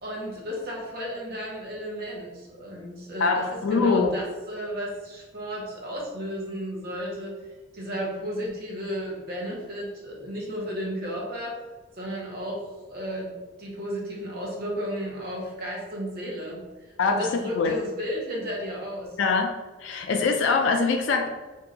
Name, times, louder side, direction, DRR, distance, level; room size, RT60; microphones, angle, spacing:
voice 1, 0.0-7.4 7.7-11.5 11.9-12.6 12.9-13.3 13.6-19.1, equal, 50° right, -2 dB, 0.7 m, -33 dB
voice 2, 3.2-4.2 17.0-17.3 17.6-17.8 19.2-19.5 19.8-21.3, left 4 dB, 75° left, 3 dB, 0.3 m, -23 dB
2.6 x 2.2 x 3.8 m, 1.2 s
head